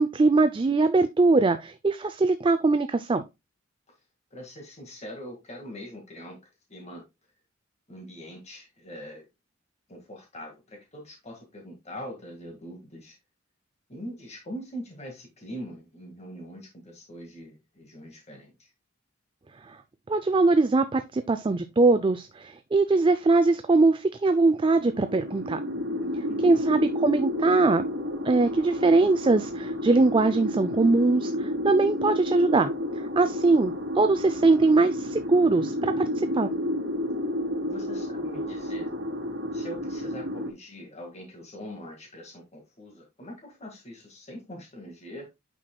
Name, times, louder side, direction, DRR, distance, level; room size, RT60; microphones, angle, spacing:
voice 1, 0.0-3.2 20.1-25.6 26.4-27.8 28.2-36.5, right 3 dB, 25° right, 0.4 m, -22 dB
voice 2, 4.3-6.4 6.7-7.1 7.9-9.3 9.9-13.2 13.9-18.7 26.3-26.6 37.6-38.9 39.5-45.3, equal, 35° left, 1.8 m, -42 dB
sound 1, 24.5-40.5, left 1 dB, 55° right, 2.5 m, -31 dB
9.0 x 5.9 x 2.2 m
head